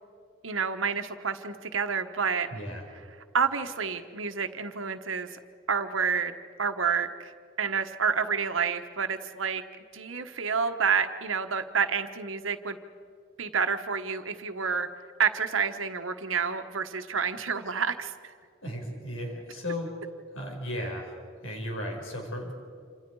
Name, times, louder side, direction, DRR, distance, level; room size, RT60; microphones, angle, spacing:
voice 1, 0.4-2.5 3.3-5.3 5.7-6.3 6.6-7.3 7.6-9.6 9.9-12.8 13.4-14.9 15.2-18.3, right 6 dB, 80° right, 8 dB, 1.3 m, -29 dB
voice 2, 2.5-2.8 18.6-19.9 20.3-22.5, left 1 dB, 85° left, 1 dB, 5.5 m, -35 dB
27.5 x 27.0 x 4.8 m, 2.2 s
head